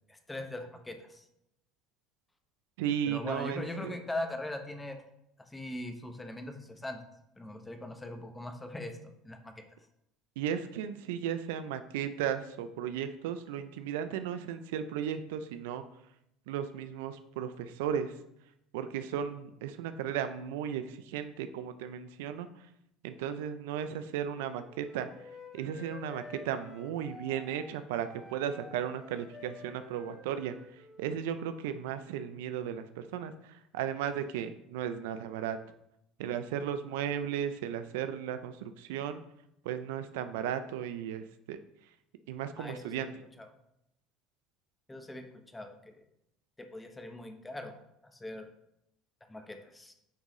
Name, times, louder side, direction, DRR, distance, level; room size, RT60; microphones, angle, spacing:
voice 1, 0.1-1.2 3.1-5.0 5.4-7.0 7.4-9.6 42.6-43.1 43.4-43.5 44.9-45.2 45.5-46.0 46.6-47.8 48.1-48.5 49.3-49.9, left 1 dB, 10° left, 6 dB, 0.9 m, -40 dB
voice 2, 2.8-4.0 10.4-15.8 16.5-18.1 18.7-22.5 23.0-25.1 25.5-30.5 31.0-35.6 36.2-39.2 39.6-41.6 42.3-43.1, right 9 dB, 90° right, 10 dB, 0.4 m, -35 dB
Wind instrument woodwind instrument, 24.1-31.6, left 2 dB, 30° left, 1.7 m, -51 dB
8.9 x 3.7 x 3.1 m, 0.80 s
supercardioid pair, 105°, 0 cm